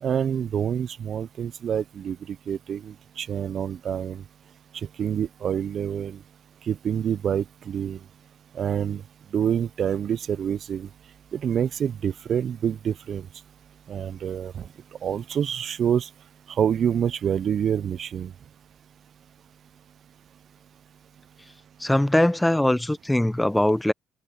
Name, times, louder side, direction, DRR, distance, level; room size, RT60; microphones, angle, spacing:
voice 1, 0.0-4.2 5.0-6.2 6.7-8.0 8.5-9.0 9.3-10.9 11.3-13.3 13.9-14.7 15.0-16.1 16.5-18.3, right 8 dB, 60° right, 0.4 m, -27 dB
voice 2, 21.8-23.9, left 1 dB, 10° left, 0.9 m, -21 dB
cardioid pair, 90°, 0 cm